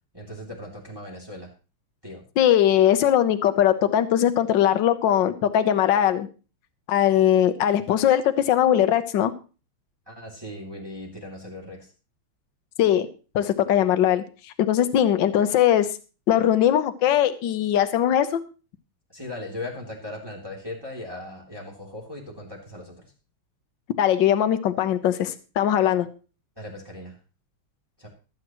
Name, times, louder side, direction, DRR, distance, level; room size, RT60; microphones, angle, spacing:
voice 1, 0.1-1.5 2.0-2.2 10.1-11.9 19.1-23.1 26.6-27.2 28.0-28.1, left 1 dB, 10° right, -2 dB, 2.9 m, -38 dB
voice 2, 2.4-6.3 6.9-9.3 12.8-13.1 13.3-14.2 14.6-15.9 16.3-18.4 24.0-26.1, left 10 dB, 65° left, 10 dB, 1.6 m, -20 dB
22.5 x 8.7 x 3.1 m, 0.34 s
omnidirectional pair, 2.4 m